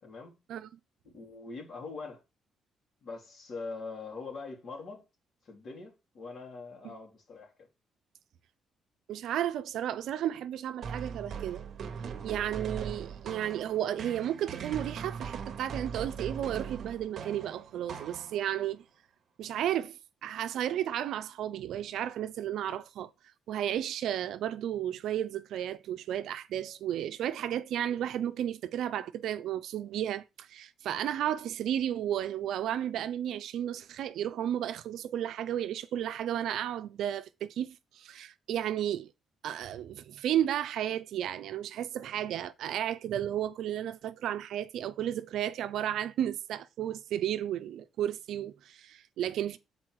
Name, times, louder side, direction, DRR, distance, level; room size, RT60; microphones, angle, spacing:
voice 1, 0.0-0.3 1.1-2.2 3.0-5.1 5.4-7.7, left 4 dB, 55° left, 2.9 m, -43 dB
voice 2, 9.1-11.6 12.2-18.8 19.4-23.1 23.5-39.1 39.4-49.6, right 11 dB, 80° right, 0.5 m, -33 dB
sound 1, 10.8-18.6, right 6 dB, 55° right, 1.0 m, -40 dB
6.1 x 4.3 x 4.7 m
cardioid pair, 90°, 0 cm